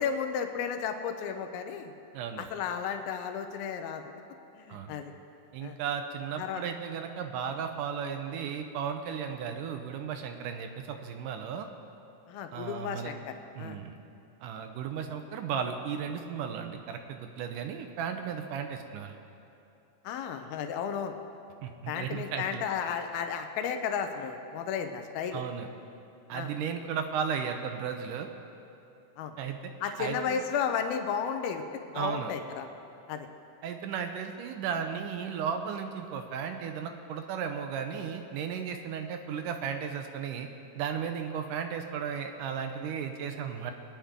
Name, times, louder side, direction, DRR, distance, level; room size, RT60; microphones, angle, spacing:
voice 1, 0.0-1.9 2.4-4.0 4.6-5.1 5.6-5.8 6.4-6.6 12.3-13.8 20.0-21.2 21.9-25.4 26.3-26.5 29.2-29.4 29.8-32.7 33.1-33.3, left 7 dB, 80° left, 6 dB, 2.6 m, -33 dB
voice 2, 2.1-2.5 4.7-4.9 5.5-11.7 12.5-13.1 13.6-14.0 14.4-19.2 21.6-22.6 25.3-25.7 26.3-28.3 29.4-30.4 31.9-32.3 33.6-40.5 40.8-43.7, right 7 dB, 75° right, 6 dB, 2.0 m, -35 dB
22.5 x 10.0 x 3.7 m, 2.8 s
omnidirectional pair, 4.3 m